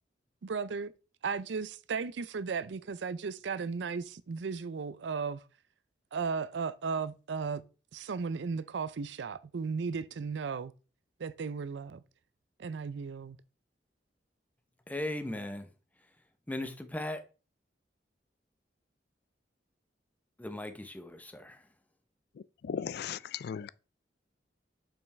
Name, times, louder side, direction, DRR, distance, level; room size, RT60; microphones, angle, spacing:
voice 1, 0.4-0.9 1.2-5.4 6.1-7.6 7.9-10.7 11.2-12.0 12.6-13.4, right 5 dB, 80° right, 0.5 m, -35 dB
voice 2, 14.9-15.7 16.5-17.2 20.4-21.7, left 1 dB, 10° left, 0.7 m, -38 dB
voice 3, 22.4-23.7, left 7 dB, 60° left, 0.3 m, -37 dB
7.0 x 5.5 x 3.3 m
head